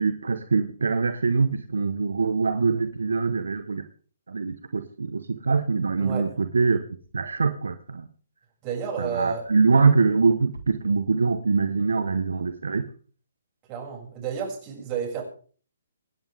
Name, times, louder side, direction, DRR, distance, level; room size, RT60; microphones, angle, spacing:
voice 1, 0.0-3.8 4.3-6.8 7.1-8.1 9.0-12.8, right 4 dB, 70° right, 10 dB, 1.3 m, -23 dB
voice 2, 6.0-6.3 8.6-9.5 13.7-15.2, right 6 dB, 30° right, 0 dB, 6.9 m, -31 dB
26.0 x 10.5 x 3.6 m, 0.43 s
figure-of-eight pair, 135°, 0 cm